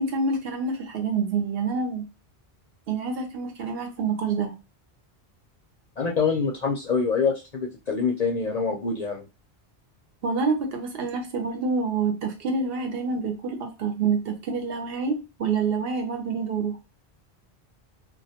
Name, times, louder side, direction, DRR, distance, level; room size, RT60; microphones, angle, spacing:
voice 1, 0.0-2.1 2.9-4.6 10.2-16.8, right 4 dB, 65° right, 0.8 m, -27 dB
voice 2, 6.0-9.2, left 5 dB, 50° left, 0.5 m, -25 dB
2.2 x 2.2 x 2.7 m
omnidirectional pair, 1.1 m